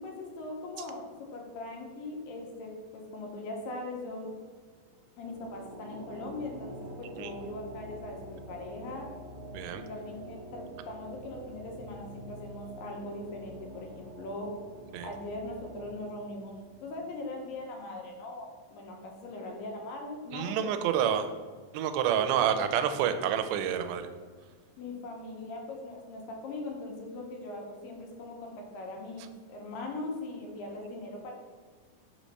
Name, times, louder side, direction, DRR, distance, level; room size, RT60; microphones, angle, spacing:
voice 1, 0.0-4.3 5.2-9.1 9.7-14.5 15.0-16.5 16.8-20.6 24.8-31.3, left 2 dB, 75° left, 1 dB, 2.5 m, -40 dB
sound 1, 5.2-17.8, right 1 dB, 70° right, 1.5 m, -46 dB
voice 2, 20.3-21.3 21.7-24.1, right 9 dB, 90° right, 8 dB, 2.4 m, -28 dB
5.7 x 3.1 x 5.3 m, 1.5 s
omnidirectional pair, 4.1 m